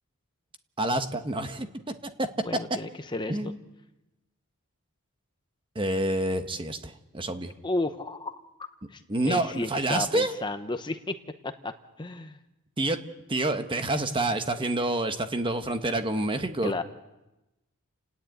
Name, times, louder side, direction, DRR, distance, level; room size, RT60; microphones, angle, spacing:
voice 1, 0.8-1.7 3.3-3.6 5.7-7.5 9.1-10.3 12.8-13.0 13.3-16.7, right 2 dB, 20° right, 7 dB, 1.1 m, -28 dB
voice 2, 2.4-3.4 7.6-8.3 8.9-11.1 11.6-11.7 12.0-12.4 16.6-16.8, left 2 dB, 20° left, 8 dB, 0.8 m, -32 dB
30.0 x 10.5 x 9.1 m, 0.99 s
head